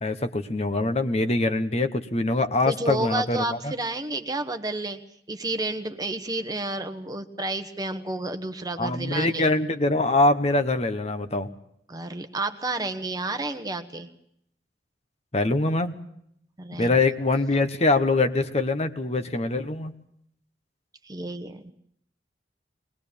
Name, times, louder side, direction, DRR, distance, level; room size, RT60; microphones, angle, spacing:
voice 1, 0.0-3.7 8.8-11.5 15.3-16.0 16.7-19.9, left 2 dB, 35° left, 9 dB, 1.2 m, -24 dB
voice 2, 2.7-5.0 5.3-9.5 11.9-14.1 16.6-16.9 21.0-21.7, right 2 dB, 20° right, 8 dB, 1.1 m, -31 dB
21.0 x 21.0 x 7.0 m, 0.71 s
head